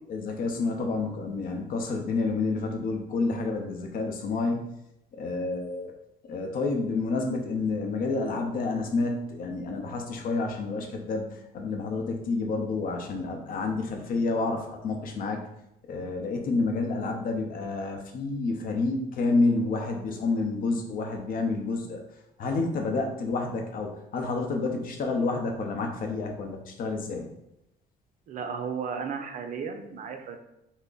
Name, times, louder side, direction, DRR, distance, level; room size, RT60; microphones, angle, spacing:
voice 1, 0.1-4.7 5.1-5.9 6.2-15.4 15.9-22.0 22.4-27.3, left 3 dB, 55° left, 3 dB, 0.7 m, -29 dB
voice 2, 28.3-30.4, right 6 dB, 50° right, 5 dB, 0.5 m, -34 dB
3.4 x 2.1 x 3.9 m, 0.85 s
cardioid pair, 110°, 17 cm